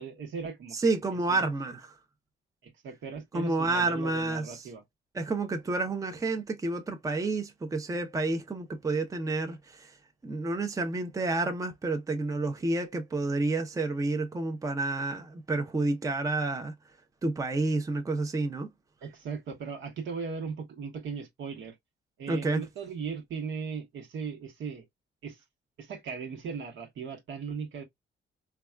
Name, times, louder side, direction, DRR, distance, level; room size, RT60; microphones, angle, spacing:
voice 1, 0.0-1.5 2.6-4.8 19.0-21.8 22.2-24.8 25.2-25.4 25.8-27.8, right 5 dB, 70° right, 1.0 m, -38 dB
voice 2, 0.7-1.9 3.3-4.6 5.1-9.9 10.2-16.7 17.2-18.7 22.3-22.6, right 2 dB, 15° right, 0.6 m, -29 dB
3.4 x 2.3 x 2.2 m
cardioid pair, 90°, 20 cm